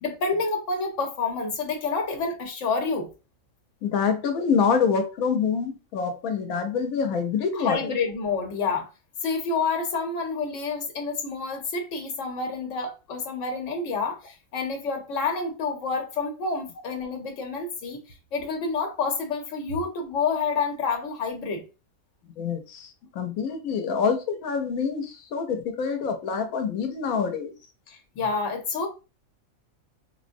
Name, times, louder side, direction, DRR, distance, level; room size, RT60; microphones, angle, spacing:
voice 1, 0.0-3.1 7.6-8.9 9.2-18.0 18.3-21.6 27.9-28.9, left 4 dB, 65° left, 1.1 m, -28 dB
voice 2, 3.8-7.9 22.4-27.5, left 6 dB, 90° left, 1.0 m, -26 dB
3.7 x 2.1 x 2.5 m
omnidirectional pair, 1.4 m